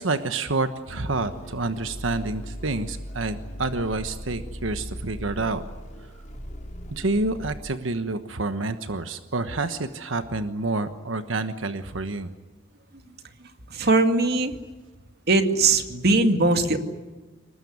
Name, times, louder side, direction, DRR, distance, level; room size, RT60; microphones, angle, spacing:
voice 1, 0.0-5.6 6.9-12.3, right 3 dB, 90° right, 9 dB, 1.2 m, -28 dB
sound 1, 0.9-7.6, equal, 40° left, 3.8 m, -38 dB
voice 2, 13.7-14.5 15.3-16.8, right 3 dB, 55° right, 7 dB, 2.2 m, -20 dB
23.5 x 20.5 x 9.5 m, 1.2 s
head